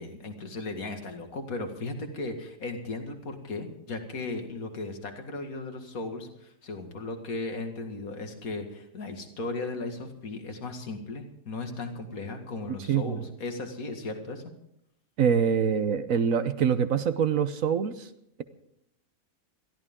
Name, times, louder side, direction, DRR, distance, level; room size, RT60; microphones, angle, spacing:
voice 1, 0.0-14.4, left 3 dB, 60° left, 5 dB, 2.4 m, -36 dB
voice 2, 12.9-13.2 15.2-18.1, right 7 dB, 60° right, 11 dB, 1.2 m, -25 dB
22.0 x 14.0 x 3.7 m, 0.76 s
omnidirectional pair, 1.7 m